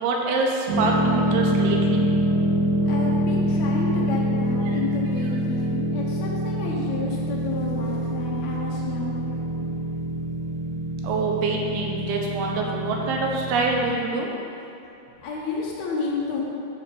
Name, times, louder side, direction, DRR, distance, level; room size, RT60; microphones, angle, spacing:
voice 1, 0.0-2.1 4.7-4.8 11.0-14.3, right 3 dB, 75° right, -1 dB, 2.6 m, -25 dB
sound 1, 0.7-13.9, equal, 55° right, 2.2 m, -25 dB
voice 2, 2.8-9.4 15.2-16.4, left 3 dB, 75° left, -4 dB, 1.6 m, -31 dB
9.4 x 4.3 x 6.8 m, 2.8 s
omnidirectional pair, 4.7 m